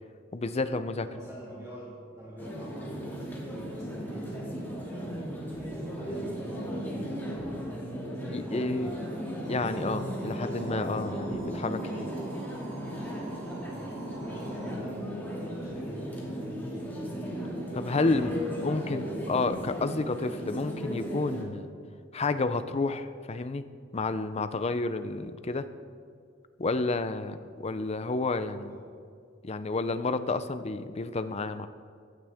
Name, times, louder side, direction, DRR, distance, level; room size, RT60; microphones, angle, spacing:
voice 1, 0.3-1.1 8.3-8.9 9.5-12.1 17.7-21.7 22.1-23.6 23.9-25.7 26.6-28.7 29.4-31.7, left 3 dB, 30° left, 11 dB, 0.5 m, -30 dB
voice 2, 1.0-5.2 5.5-7.6 8.1-9.3 13.6-17.4 18.1-19.4 27.2-27.4 28.7-28.9, equal, 15° right, -7 dB, 2.3 m, -46 dB
sound 1, 2.4-21.4, equal, 10° left, 2.3 m, -36 dB
sound 2, 9.4-14.7, right 2 dB, 35° right, 3.6 m, -46 dB
16.0 x 11.5 x 3.6 m, 2.2 s
head